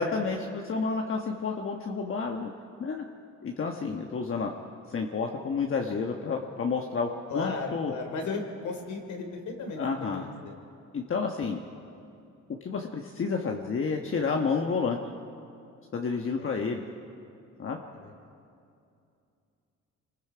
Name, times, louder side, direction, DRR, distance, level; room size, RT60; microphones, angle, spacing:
voice 1, 0.0-2.5 2.8-3.0 3.4-4.5 4.9-7.9 9.8-10.3 10.9-11.6 12.6-15.0 15.9-16.8 17.6-17.8, left 5 dB, 45° left, 1 dB, 1.4 m, -30 dB
voice 2, 7.3-9.8 10.1-10.6 16.4-16.6 18.0-18.1, left 3 dB, 70° left, 3 dB, 3.6 m, -35 dB
27.0 x 20.0 x 5.1 m, 2.6 s
cardioid pair, 90°, 30 cm